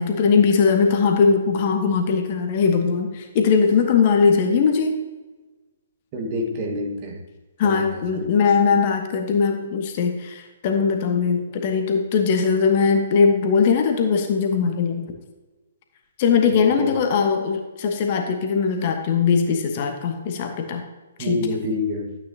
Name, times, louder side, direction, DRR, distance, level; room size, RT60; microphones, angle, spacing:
voice 1, 0.0-4.9 7.6-15.1 16.2-20.8 21.2-21.4, left 5 dB, 35° left, 4 dB, 1.3 m, -20 dB
voice 2, 6.1-7.2 7.6-8.0 16.5-16.9 21.2-22.2, left 1 dB, 30° right, 1 dB, 1.8 m, -27 dB
12.5 x 8.9 x 2.9 m, 1.2 s
figure-of-eight pair, 125°, 0 cm